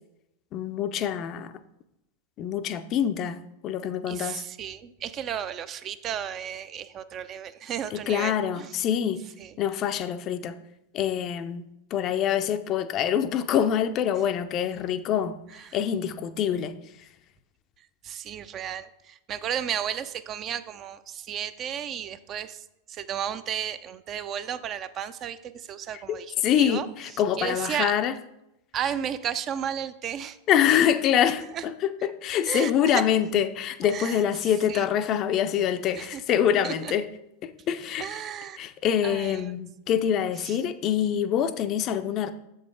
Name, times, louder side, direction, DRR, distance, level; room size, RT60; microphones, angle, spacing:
voice 1, 0.5-1.6 2.4-4.4 7.9-9.2 9.6-10.6 10.9-15.4 15.7-17.1 25.9-26.0 26.4-28.1 30.5-37.1 37.4-38.2 38.6-42.3, left 9 dB, 35° left, 0.4 m, -25 dB
voice 2, 4.1-8.7 9.4-9.5 15.5-15.8 18.0-26.9 27.4-27.9 28.7-30.4 31.5-31.6 32.5-33.0 33.8-34.2 34.7-34.8 35.9-36.2 36.6-36.9 38.0-38.6 39.0-39.6 40.4-40.6, right 9 dB, 30° right, 0.4 m, -33 dB
7.3 x 5.5 x 3.6 m
figure-of-eight pair, 90°, 0 cm